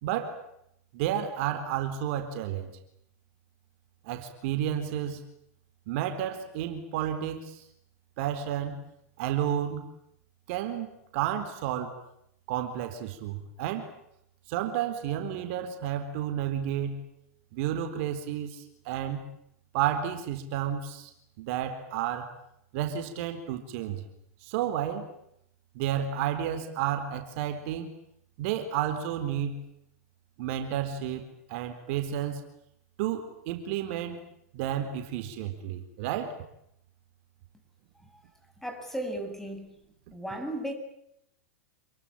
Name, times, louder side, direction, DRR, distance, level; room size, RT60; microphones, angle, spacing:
voice 1, 0.0-0.4 0.9-2.7 4.0-5.2 5.9-7.6 8.2-8.8 9.2-9.8 10.5-12.0 12.5-13.9 14.5-17.0 17.5-19.2 19.7-21.1 21.4-22.3 22.7-24.0 24.4-25.1 25.7-27.9 28.4-29.6 30.4-31.2 31.5-32.4 33.0-34.2 34.5-36.4, right 10 dB, 55° right, 7 dB, 4.0 m, -31 dB
voice 2, 38.6-39.7 40.1-40.7, right 1 dB, 5° left, 5 dB, 7.9 m, -36 dB
28.5 x 22.5 x 8.9 m, 0.77 s
hypercardioid pair, 120°, 8 cm